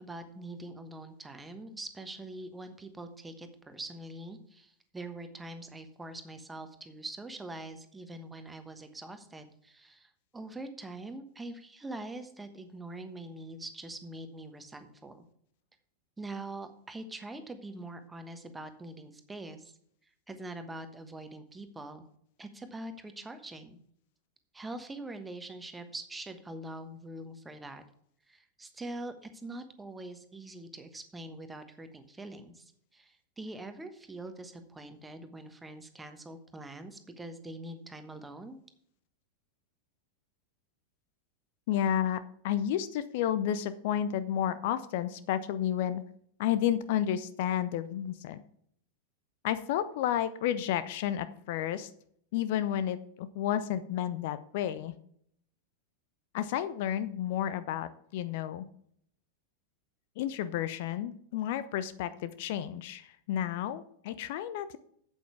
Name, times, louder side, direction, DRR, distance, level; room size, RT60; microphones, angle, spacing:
voice 1, 0.0-15.2 16.2-19.7 20.3-22.0 22.4-23.8 24.5-27.8 28.3-38.6, right 2 dB, 10° right, 8 dB, 1.2 m, -44 dB
voice 2, 41.7-46.0 46.4-48.4 49.4-51.9 52.3-54.9 56.3-58.7 60.2-64.8, left 10 dB, 50° left, 14 dB, 0.5 m, -31 dB
8.3 x 8.1 x 4.6 m, 0.65 s
figure-of-eight pair, 90°, 0 cm